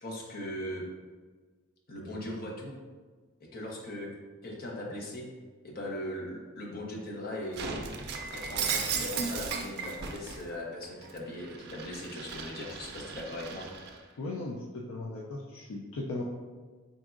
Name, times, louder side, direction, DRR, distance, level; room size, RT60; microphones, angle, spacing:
voice 1, 0.0-0.8 1.9-2.8 3.5-4.1 4.4-5.3 5.6-7.9 8.3-13.7, left 1 dB, 45° left, -2 dB, 0.8 m, -39 dB
Shatter, 7.5-10.4 10.8-14.0, right 5 dB, 50° right, 0.4 m, -36 dB
voice 2, 14.2-16.2, left 2 dB, 70° left, -1 dB, 0.4 m, -37 dB
4.0 x 3.5 x 2.4 m, 1.4 s
head